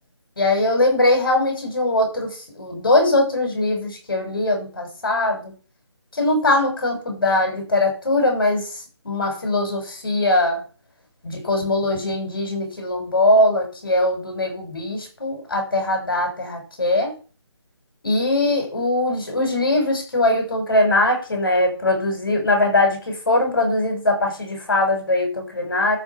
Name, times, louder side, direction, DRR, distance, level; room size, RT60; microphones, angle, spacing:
voice 1, 0.4-2.3 2.5-5.5 6.2-8.7 9.0-10.6 11.3-17.1 18.0-26.0, left 2 dB, 50° left, 3 dB, 6.5 m, -21 dB
12.5 x 5.2 x 7.4 m, 0.35 s
figure-of-eight pair, 175°, 15 cm